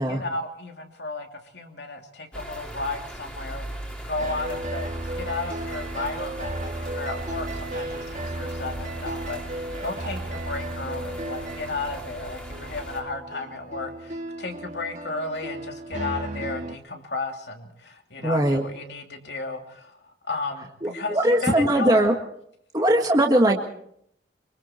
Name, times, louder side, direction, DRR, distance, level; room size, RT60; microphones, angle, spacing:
voice 1, 0.0-22.1, left 3 dB, 70° left, 3 dB, 2.8 m, -34 dB
sound 1, 2.3-13.0, right 1 dB, 5° left, 3.0 m, -39 dB
sound 2, 4.2-16.8, right 1 dB, 40° right, 1.8 m, -34 dB
voice 2, 18.2-18.7 20.8-22.1 22.7-23.7, right 1 dB, 20° right, 1 dB, 1.7 m, -20 dB
24.5 x 23.5 x 4.4 m, 0.70 s
head